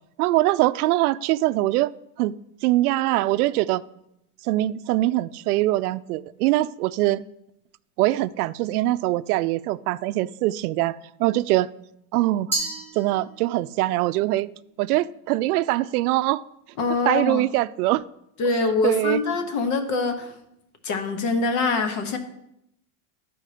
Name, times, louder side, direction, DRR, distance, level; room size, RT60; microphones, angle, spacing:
voice 1, 0.2-1.9 2.2-2.3 2.6-3.8 4.4-7.2 8.0-11.7 12.1-12.5 13.0-14.5 14.8-16.4 17.1-18.0 18.8-19.2, right 17 dB, 90° right, 15 dB, 0.5 m, -23 dB
Glass, 12.5-13.7, right 2 dB, 5° left, 1.3 m, -31 dB
voice 2, 16.8-17.4 18.4-20.3 20.8-22.2, left 4 dB, 40° left, 7 dB, 1.2 m, -24 dB
12.5 x 4.7 x 5.0 m, 0.79 s
supercardioid pair, 170°, 44 cm